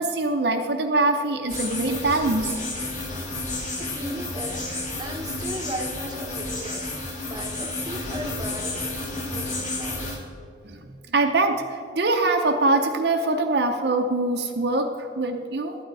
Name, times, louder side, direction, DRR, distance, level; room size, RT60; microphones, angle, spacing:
voice 1, 0.0-2.6 10.6-15.8, right 2 dB, 55° right, 3 dB, 0.7 m, -23 dB
sound 1, 1.5-10.2, left 2 dB, 40° left, 1.8 m, -31 dB
voice 2, 3.8-10.1, right 1 dB, 20° right, 2 dB, 0.9 m, -37 dB
12.0 x 9.2 x 4.7 m, 2.5 s
head